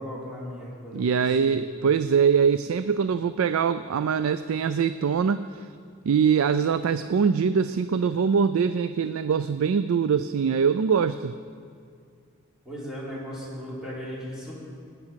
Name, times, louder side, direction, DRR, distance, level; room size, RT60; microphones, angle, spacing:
voice 1, 0.0-1.6 12.6-14.6, equal, 5° right, -7 dB, 4.0 m, -37 dB
voice 2, 0.9-5.6 6.0-11.3, right 6 dB, 80° right, 13 dB, 0.4 m, -23 dB
18.5 x 9.1 x 5.8 m, 2.3 s
head